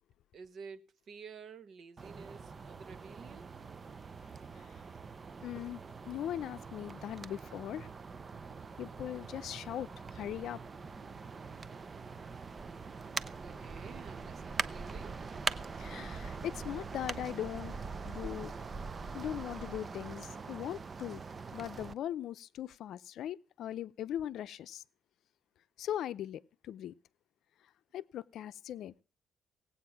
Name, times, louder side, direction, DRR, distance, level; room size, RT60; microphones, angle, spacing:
voice 1, 0.3-3.5 5.5-5.6 13.4-15.2, right 5 dB, 50° right, 1.1 m, -51 dB
sound 1, 2.0-21.9, right 4 dB, 30° right, 0.7 m, -43 dB
voice 2, 5.4-5.8 6.1-7.9 8.8-10.6 15.8-17.7 18.0-18.5 19.1-21.2 21.5-24.8 25.8-26.9 27.9-29.0, left 11 dB, 70° left, 0.6 m, -40 dB
18.5 x 8.6 x 5.9 m
cardioid pair, 135°, 0 cm